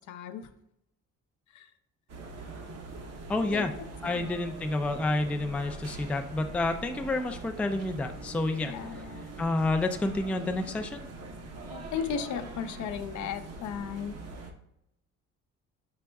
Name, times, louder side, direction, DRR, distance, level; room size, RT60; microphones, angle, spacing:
voice 1, 0.1-0.5 1.5-1.7 3.5-3.7 4.1-4.4 8.6-9.2 11.7-14.2, left 7 dB, 75° left, 9 dB, 0.6 m, -36 dB
sound 1, 2.1-14.5, right 3 dB, 55° right, 0.9 m, -43 dB
voice 2, 3.3-3.7 4.0-8.7 9.4-11.1, left 2 dB, 5° left, 5 dB, 0.3 m, -29 dB
5.1 x 4.7 x 2.2 m, 0.80 s
cardioid pair, 90°, 30 cm